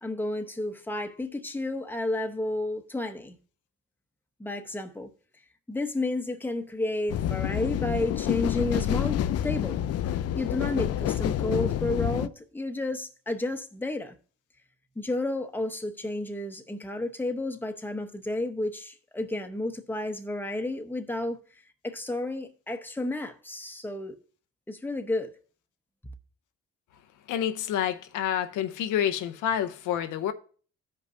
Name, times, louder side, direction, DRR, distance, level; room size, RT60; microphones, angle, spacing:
voice 1, 0.0-3.4 4.4-5.1 5.7-9.8 10.3-14.2 15.0-21.4 21.8-24.2 24.7-25.3, left 2 dB, 5° left, 0.8 m, -31 dB
sound 1, 7.1-12.3, left 11 dB, 55° left, 0.4 m, -28 dB
voice 2, 27.3-30.3, left 10 dB, 85° left, 0.7 m, -28 dB
14.0 x 5.3 x 2.6 m
cardioid pair, 90°, 30 cm